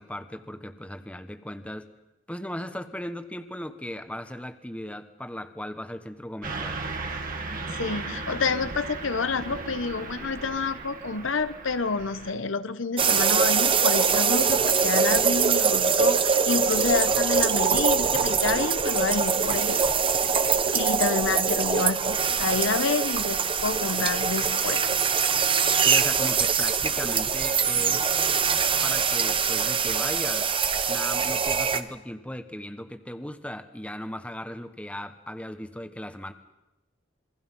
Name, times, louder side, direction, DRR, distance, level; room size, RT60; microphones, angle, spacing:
voice 1, 0.0-1.9 2.3-7.0 25.8-28.1 28.8-30.5 30.9-36.3, left 1 dB, 5° left, 9 dB, 1.3 m, -37 dB
Car passing by / Truck, 6.4-12.3, right 3 dB, 45° right, 2.4 m, -36 dB
voice 2, 7.7-20.2 20.7-24.8, left 4 dB, 75° left, 12 dB, 1.0 m, -29 dB
sound 1, 13.0-31.8, right 6 dB, 25° right, 1.0 m, -23 dB
27.5 x 23.0 x 5.5 m, 0.98 s
head